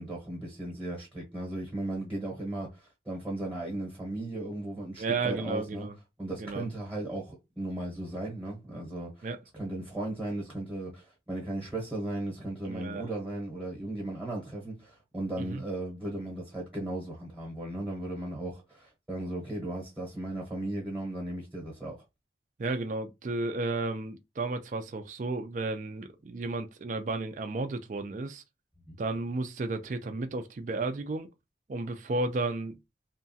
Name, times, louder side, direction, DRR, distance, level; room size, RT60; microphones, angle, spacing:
voice 1, 0.0-5.9 6.2-9.3 9.5-22.0 28.9-29.0, right 1 dB, 10° right, 0.9 m, -36 dB
voice 2, 5.0-5.9 6.4-6.7 9.2-9.4 12.6-13.0 15.4-15.6 22.6-28.4 29.0-31.3 31.7-32.8, right 3 dB, 45° right, 0.4 m, -33 dB
2.9 x 2.3 x 2.7 m
head